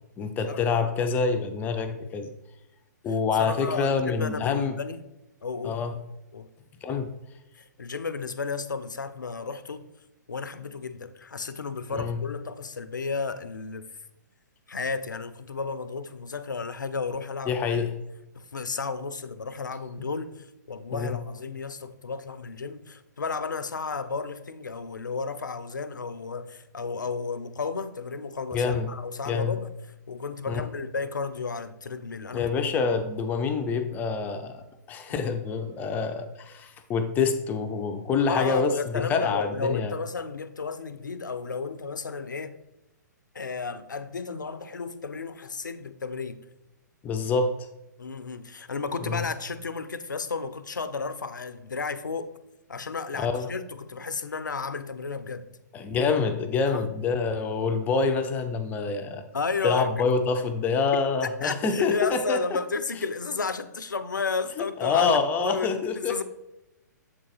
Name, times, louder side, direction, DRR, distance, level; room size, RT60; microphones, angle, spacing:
voice 1, 0.2-2.3 3.0-4.8 5.6-5.9 6.8-7.1 11.9-12.2 17.5-17.9 20.9-21.2 28.5-28.9 29.3-29.6 30.5-30.6 32.3-39.9 47.0-47.7 49.1-49.2 53.2-53.5 55.7-59.3 59.6-62.4 64.8-66.2, left 5 dB, 15° left, 0.4 m, -26 dB
voice 2, 3.4-5.0 5.4-5.8 6.3-6.5 7.8-9.8 10.3-13.9 14.7-17.9 18.3-20.3 20.7-29.7 30.1-32.5 35.1-35.3 38.2-42.6 43.3-46.4 48.0-52.3 52.7-55.5 56.7-56.8 59.3-59.9 61.4-66.2, left 4 dB, 85° left, 0.5 m, -33 dB
7.4 x 3.9 x 4.0 m
figure-of-eight pair, 125°, 10 cm